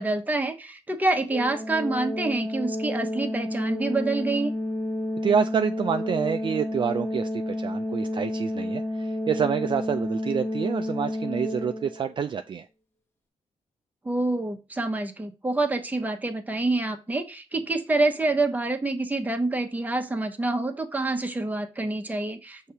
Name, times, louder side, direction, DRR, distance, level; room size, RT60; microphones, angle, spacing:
voice 1, 0.0-4.5 14.0-22.7, right 2 dB, 15° right, 5 dB, 0.9 m, -27 dB
Organ, 1.3-12.2, left 1 dB, 20° left, 1.0 m, -30 dB
voice 2, 5.2-12.7, right 7 dB, 45° right, 8 dB, 0.4 m, -27 dB
6.3 x 2.8 x 5.6 m, 0.31 s
cardioid pair, 105°, 12 cm